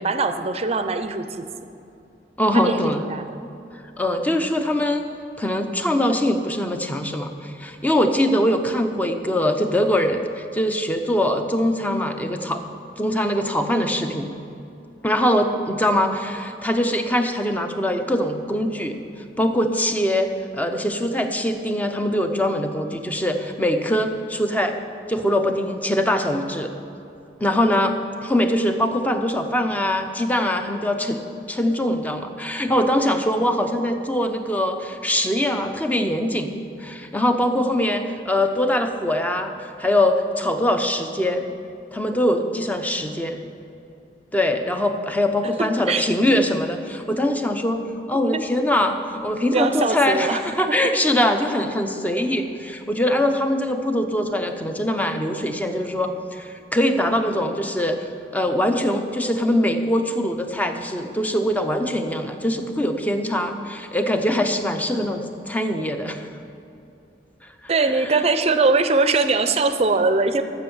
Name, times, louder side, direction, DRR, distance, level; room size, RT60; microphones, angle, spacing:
voice 1, 0.0-1.5 2.5-2.8 3.1-3.2 45.9-46.0 48.3-48.4 49.5-50.4 67.7-70.4, right 3 dB, 35° right, 9 dB, 0.6 m, -21 dB
voice 2, 2.4-3.1 4.0-5.1 5.4-12.6 13.0-14.3 15.0-19.0 19.4-20.3 20.5-24.7 25.1-26.7 27.4-28.0 28.2-31.2 31.5-36.5 36.8-41.5 41.9-43.4 44.3-66.3 67.4-68.2, left 1 dB, 10° left, 6 dB, 0.7 m, -22 dB
13.5 x 6.2 x 7.2 m, 2.7 s
head